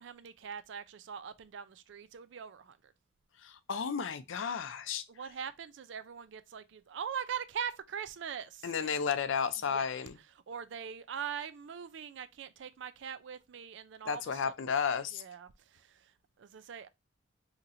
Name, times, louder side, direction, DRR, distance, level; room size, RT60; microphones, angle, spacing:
voice 1, 0.0-2.9 5.1-9.1 9.6-9.9 10.2-14.5 15.1-16.1 16.4-16.9, right 7 dB, 70° right, 0.4 m, -42 dB
voice 2, 3.4-5.0 8.6-10.1 14.1-15.2, left 6 dB, 85° left, 0.5 m, -33 dB
4.0 x 2.9 x 2.5 m
head